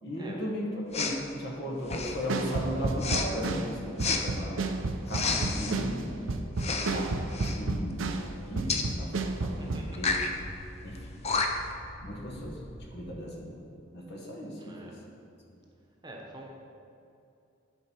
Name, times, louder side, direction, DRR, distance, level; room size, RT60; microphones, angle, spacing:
voice 1, 0.0-4.6 5.1-5.3 5.6-6.1 6.9-7.1 7.6-8.2 8.4-9.1 9.4-10.2 10.8-11.1 12.0-12.6 12.9-13.6 13.9-14.9, equal, 60° left, -2 dB, 1.5 m, -36 dB
Respiratory sounds, 0.9-1.2 1.8-2.3 3.0-3.3 4.0-4.2 5.1-5.8 6.6-7.0 7.3-7.6 8.7-8.9 9.9-10.3 10.9-11.0 11.2-11.7, left 4 dB, 35° left, 0.6 m, -30 dB
sound 1, 2.3-8.3 8.6-9.9, right 3 dB, 80° right, 0.6 m, -31 dB
sound 2, 5.3-13.1, equal, ahead, 1.2 m, -47 dB
voice 2, 9.5-10.2 14.6-15.0 16.0-16.6, right 1 dB, 20° right, -1 dB, 1.0 m, -46 dB
11.0 x 4.5 x 4.5 m, 2.5 s
head